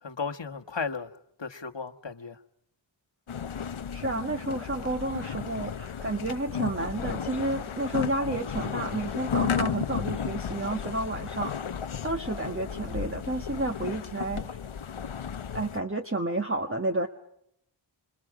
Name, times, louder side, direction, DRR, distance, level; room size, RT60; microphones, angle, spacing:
voice 1, 0.0-1.1 1.4-2.4, left 5 dB, 60° left, 1.5 m, -35 dB
sound 1, 3.3-15.8, left 7 dB, 80° left, 0.8 m, -34 dB
voice 2, 3.9-11.7 12.0-14.6 15.5-17.1, right 2 dB, 25° right, 1.4 m, -31 dB
27.0 x 27.0 x 4.9 m
wide cardioid pair, 55°, 48 cm